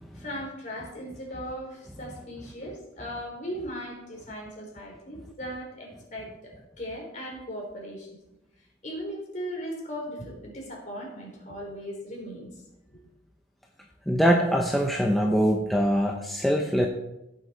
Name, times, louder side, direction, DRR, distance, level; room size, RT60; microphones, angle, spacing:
voice 1, 0.1-6.5 6.8-8.1 8.8-12.5 12.9-13.0, equal, 40° left, -2 dB, 3.9 m, -38 dB
voice 2, 14.1-16.9, equal, ahead, 0 dB, 0.8 m, -23 dB
16.0 x 6.7 x 4.6 m, 0.90 s
head